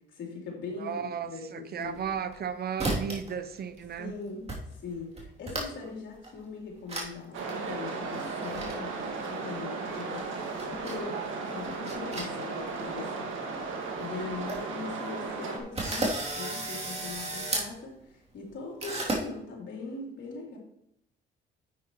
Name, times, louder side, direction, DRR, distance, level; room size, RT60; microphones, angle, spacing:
voice 1, 0.0-2.0 4.0-20.6, left 4 dB, 70° left, -2 dB, 3.5 m, -41 dB
voice 2, 0.8-4.1, right 7 dB, 50° right, 11 dB, 0.8 m, -35 dB
sound 1, 1.8-2.4 2.8-3.3 3.6-4.1 4.5-4.6 4.9-5.9 6.2-6.3 6.9-7.1 7.4-7.5 8.1-8.7 9.9-11.0 11.6-12.7 13.0-13.1 13.6-13.7 14.0-14.1 14.3-14.6 15.1-15.2 15.7-17.7 18.8-19.2, right 2 dB, 30° right, 3.0 m, -33 dB
sound 2, 7.3-15.6, right 4 dB, 85° right, 2.0 m, -35 dB
10.0 x 8.5 x 3.1 m, 0.76 s
cardioid pair, 90°, 20 cm